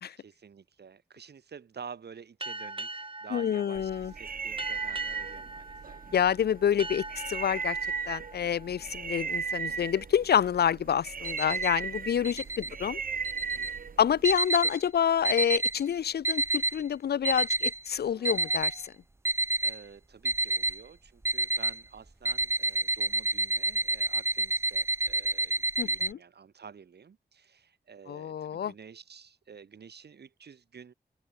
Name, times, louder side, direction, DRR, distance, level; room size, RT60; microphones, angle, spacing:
voice 1, 0.2-6.0 12.6-13.0 13.6-14.0 19.6-30.9, right 6 dB, 80° right, 3.8 m, -50 dB
sound 1, 2.4-9.7, right 2 dB, 30° right, 4.3 m, -42 dB
voice 2, 3.3-4.1 6.1-7.8 8.1-13.0 14.0-18.9 25.8-26.2 28.1-28.7, left 9 dB, 75° left, 0.5 m, -28 dB
sound 2, 3.8-14.4, right 6 dB, 60° right, 1.0 m, -36 dB
sound 3, 11.2-11.7 12.2-12.7 13.2-13.7 14.2-14.8 15.2-15.8 16.2-16.8 17.2-17.8 18.2-18.8 19.2-19.8 20.2-20.8 21.2-21.8 22.2-26.1, right 2 dB, 15° right, 0.6 m, -29 dB
open air
cardioid pair, 55°, 17 cm